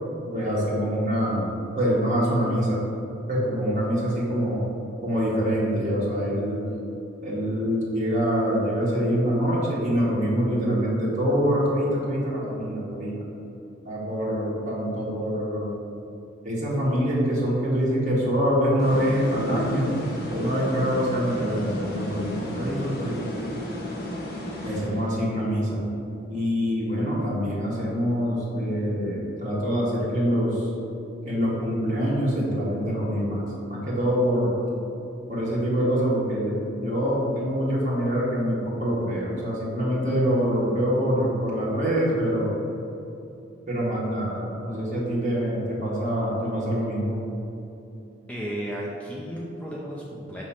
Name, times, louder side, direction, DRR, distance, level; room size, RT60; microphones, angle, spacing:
voice 1, 0.2-1.5 1.8-2.8 3.3-4.6 5.0-6.7 7.2-13.2 13.8-15.7 16.4-19.9 20.3-23.2 24.6-25.8 26.3-30.7 31.3-34.5 35.3-42.5 43.7-47.2, equal, 40° right, -6 dB, 1.5 m, -25 dB
sound 1, 18.8-25.4, left 1 dB, 50° left, 1.1 m, -33 dB
voice 2, 48.3-50.4, equal, 5° left, -5 dB, 0.5 m, -34 dB
6.1 x 3.1 x 5.6 m, 2.8 s
head